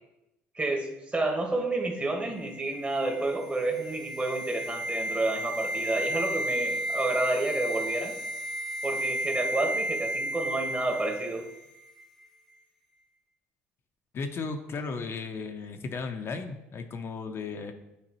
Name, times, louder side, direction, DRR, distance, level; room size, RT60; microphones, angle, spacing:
voice 1, 0.5-8.1 8.8-11.4, right 2 dB, 25° right, 2 dB, 1.3 m, -30 dB
sound 1, 2.4-11.6 11.9-12.0, right 1 dB, 5° left, 0.7 m, -33 dB
voice 2, 14.1-17.7, left 4 dB, 45° left, 6 dB, 0.6 m, -35 dB
8.7 x 3.9 x 3.0 m, 0.91 s
supercardioid pair, 85°, 6 cm